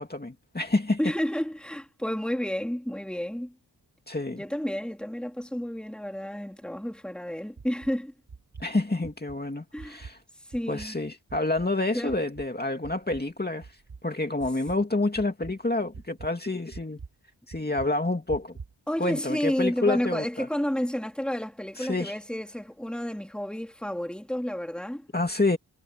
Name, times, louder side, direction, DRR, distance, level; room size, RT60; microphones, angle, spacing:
voice 1, 0.0-1.0 4.1-4.4 8.6-10.2 10.7-13.7 14.0-17.0 17.5-18.6 19.0-20.5 21.8-22.1 25.1-25.6, left 2 dB, 25° left, 2.4 m, -28 dB
voice 2, 1.0-3.6 4.3-8.1 9.7-10.0 10.5-11.0 11.9-12.1 18.9-25.1, equal, ahead, 2.7 m, -31 dB
sound 1, 7.6-7.9 8.3-8.7 9.0-9.4 9.8-10.2 10.5-11.0 11.3-11.7 12.1-12.5 12.8-13.3 13.6-14.0 14.4-14.8 15.1-15.6 15.9-16.3 16.7-17.1 17.5-17.9 18.3-18.7, right 5 dB, 70° right, 6.3 m, -44 dB
wide cardioid pair, 80°, 41 cm